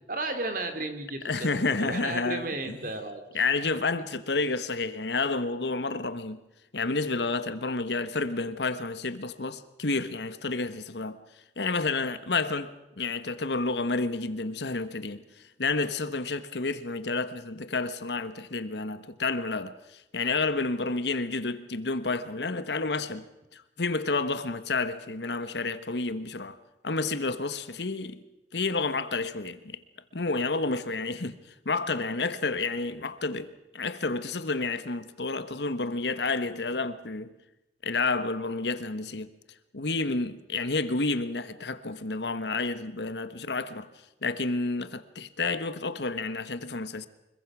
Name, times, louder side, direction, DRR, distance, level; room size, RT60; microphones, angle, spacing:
voice 1, 0.1-1.5 1.8-3.2, right 2 dB, 50° right, 2.7 m, -33 dB
voice 2, 1.2-2.8 3.3-6.4 6.7-11.2 11.6-15.2 15.6-23.2 23.5-26.6 26.8-28.2 28.5-29.8 30.1-31.4 31.6-37.3 37.8-39.3 39.7-43.9 44.2-47.1, left 3 dB, 75° left, 1.3 m, -30 dB
25.0 x 22.0 x 6.2 m
head